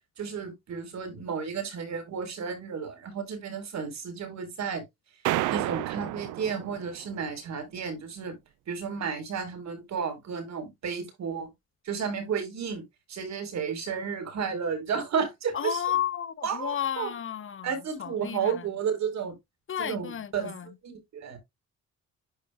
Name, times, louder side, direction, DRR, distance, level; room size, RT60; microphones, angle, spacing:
voice 1, 0.2-4.8 5.5-8.4 8.7-11.5 11.9-12.8 13.1-15.8 16.4-17.1 17.6-19.4 19.8-20.5 20.8-21.4, right 6 dB, 65° right, 3.9 m, -32 dB
sound 1, 5.2-7.2, right 16 dB, 85° right, 0.5 m, -30 dB
voice 2, 15.5-17.7 18.0-18.6 19.7-20.7, left 9 dB, 45° left, 0.8 m, -32 dB
11.5 x 4.6 x 2.3 m
cardioid pair, 90°, 30 cm